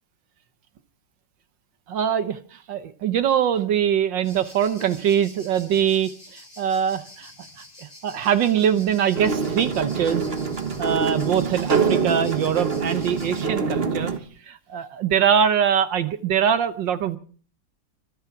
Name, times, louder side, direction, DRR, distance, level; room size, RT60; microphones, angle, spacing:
voice 1, 1.9-2.4 2.7-7.3 8.0-10.3 10.8-14.1 14.5-17.2, right 8 dB, 70° right, 12 dB, 1.5 m, -22 dB
sound 1, 4.2-13.4, left 1 dB, 20° left, 6.4 m, -47 dB
sound 2, 9.1-14.2, right 5 dB, 35° right, 1.4 m, -25 dB
24.5 x 9.7 x 5.8 m, 0.43 s
omnidirectional pair, 2.2 m